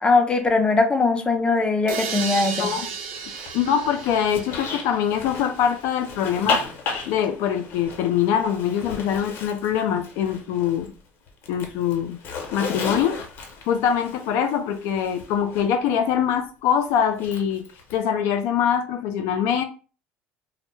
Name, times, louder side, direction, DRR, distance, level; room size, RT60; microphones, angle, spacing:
voice 1, 0.0-2.8, left 3 dB, 20° left, 0.5 m, -20 dB
sound 1, 1.9-5.6, right 5 dB, 80° right, 0.5 m, -33 dB
Zipper (clothing), 3.1-11.0 11.3-15.7 17.1-18.0, left 4 dB, 55° left, 0.7 m, -34 dB
voice 2, 3.5-6.6 7.1-10.9 11.5-12.2 12.5-13.2 13.7-17.7 17.9-19.6, left 8 dB, 70° left, 0.4 m, -23 dB
2.1 x 2.1 x 3.0 m
supercardioid pair, 85°, 5 cm